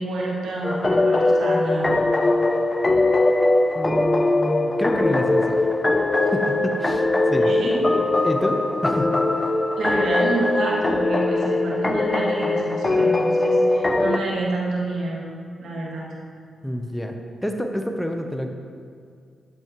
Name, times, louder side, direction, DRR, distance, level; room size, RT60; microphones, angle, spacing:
voice 1, 0.0-1.9 7.4-7.7 9.8-15.3 15.6-16.1, right 2 dB, 75° right, -4 dB, 1.9 m, -28 dB
sound 1, 0.6-14.2, left 2 dB, 30° left, 0.6 m, -21 dB
voice 2, 3.7-5.6 6.3-7.5 8.0-9.5 16.6-17.1 17.4-18.5, equal, 5° left, 4 dB, 0.9 m, -28 dB
10.5 x 7.7 x 3.1 m, 2.2 s
supercardioid pair, 45°, 0 cm